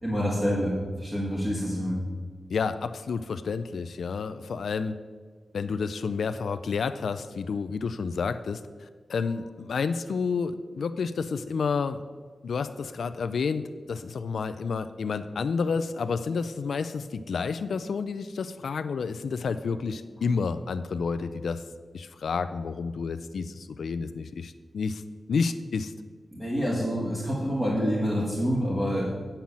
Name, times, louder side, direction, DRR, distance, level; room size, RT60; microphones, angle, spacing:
voice 1, 0.0-2.0 26.3-29.2, equal, 15° right, -7 dB, 1.6 m, -27 dB
voice 2, 2.5-4.9 5.5-12.0 12.4-21.6 21.9-25.0 25.3-25.9, left 5 dB, 80° left, 11 dB, 0.4 m, -30 dB
8.9 x 5.7 x 7.2 m, 1.6 s
wide cardioid pair, 175°, 0 cm